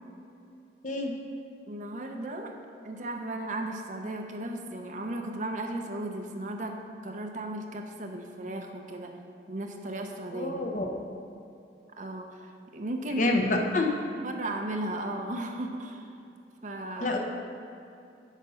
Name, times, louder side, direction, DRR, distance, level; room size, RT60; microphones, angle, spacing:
voice 1, 1.7-2.6 2.8-6.8 7.0-9.1 9.5-10.6 12.0-13.4 14.2-16.1 16.6-17.2, right 1 dB, 40° right, 3 dB, 0.6 m, -35 dB
voice 2, 10.3-10.9 13.2-13.9 17.0-17.2, left 2 dB, 40° left, 2 dB, 0.8 m, -27 dB
8.2 x 5.2 x 5.6 m, 2.7 s
head